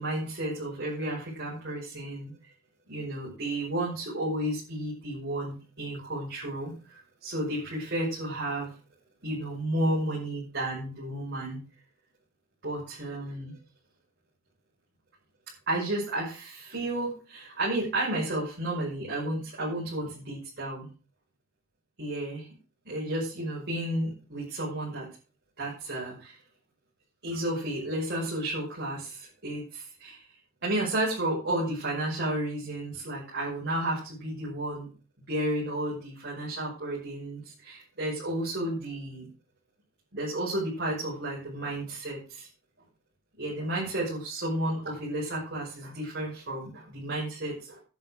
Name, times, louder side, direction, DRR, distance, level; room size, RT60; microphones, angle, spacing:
voice 1, 0.0-2.3 2.9-8.7 9.2-11.6 12.6-13.5 15.7-20.9 22.0-22.5 22.9-25.1 25.6-26.4 27.2-30.2 30.6-34.9 35.3-39.3 40.1-42.5 43.4-47.8, right 1 dB, 55° right, -5 dB, 5.6 m, -32 dB
10.5 x 8.9 x 6.5 m, 0.37 s
head